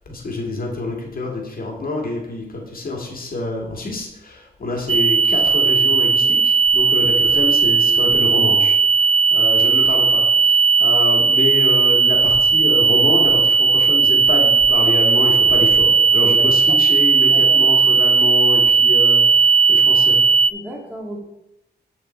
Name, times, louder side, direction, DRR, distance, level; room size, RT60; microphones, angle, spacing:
voice 1, 0.1-20.2, left 2 dB, 55° left, 0 dB, 1.9 m, -26 dB
sound 1, 4.9-20.5, right 5 dB, 35° right, 0.4 m, -15 dB
voice 2, 16.2-16.8 17.3-17.8 20.5-21.2, right 1 dB, 10° right, -2 dB, 1.9 m, -34 dB
7.7 x 7.2 x 4.4 m, 0.85 s
wide cardioid pair, 125°, 17 cm